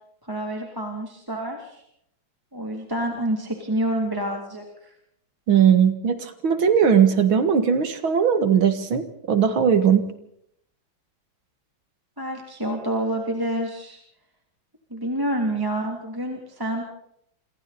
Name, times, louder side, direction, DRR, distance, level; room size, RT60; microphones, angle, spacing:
voice 1, 0.2-1.8 2.5-4.9 12.2-14.0 14.9-16.8, right 1 dB, 10° right, 1 dB, 3.0 m, -28 dB
voice 2, 5.5-10.1, right 7 dB, 80° right, 9 dB, 2.6 m, -19 dB
27.5 x 27.0 x 4.3 m, 0.73 s
omnidirectional pair, 2.2 m